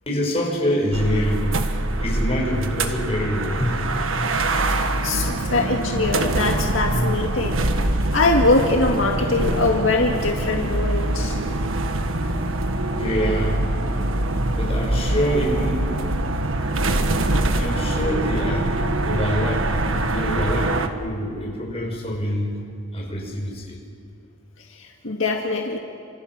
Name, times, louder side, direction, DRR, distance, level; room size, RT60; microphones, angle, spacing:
voice 1, 0.1-1.4 2.0-3.8 12.9-13.6 14.5-16.2 17.5-18.7 19.1-19.7 20.0-22.5 22.9-23.8, equal, 30° left, -1 dB, 5.5 m, -25 dB
sound 1, 0.9-20.9, right 1 dB, 85° right, 1.5 m, -24 dB
voice 2, 4.8-7.6 8.1-11.4 24.8-25.8, left 3 dB, 75° left, 1 dB, 1.9 m, -22 dB
29.5 x 27.0 x 6.1 m, 2.3 s
head